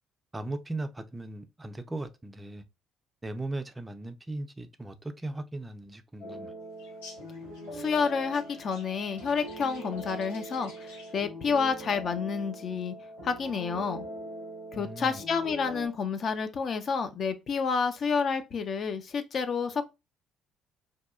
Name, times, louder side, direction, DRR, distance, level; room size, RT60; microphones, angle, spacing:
voice 1, 0.3-2.6 3.2-6.5 14.7-15.2, right 2 dB, 20° right, 0.4 m, -38 dB
sound 1, 6.2-15.9, right 1 dB, 65° left, 1.6 m, -42 dB
sound 2, 6.8-11.3, left 3 dB, 80° left, 0.8 m, -53 dB
voice 2, 7.7-12.9 13.2-14.1 14.7-19.8, left 5 dB, 45° left, 0.4 m, -29 dB
2.7 x 2.3 x 2.3 m
figure-of-eight pair, 50°, 0 cm